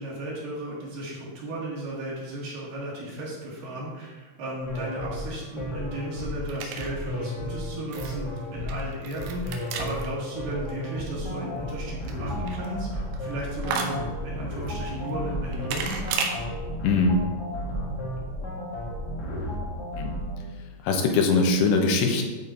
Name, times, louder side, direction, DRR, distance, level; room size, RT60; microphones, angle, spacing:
voice 1, 0.0-16.3, right 1 dB, 60° right, -5 dB, 3.1 m, -35 dB
sound 1, 4.6-20.5, left 1 dB, 55° left, 1.1 m, -33 dB
sound 2, 5.1-16.4, right 5 dB, 80° right, 2.9 m, -37 dB
voice 2, 16.8-17.3 20.0-20.1 20.8-22.2, left 3 dB, 85° left, 3 dB, 3.1 m, -21 dB
11.5 x 4.3 x 4.5 m, 1.3 s
omnidirectional pair, 4.8 m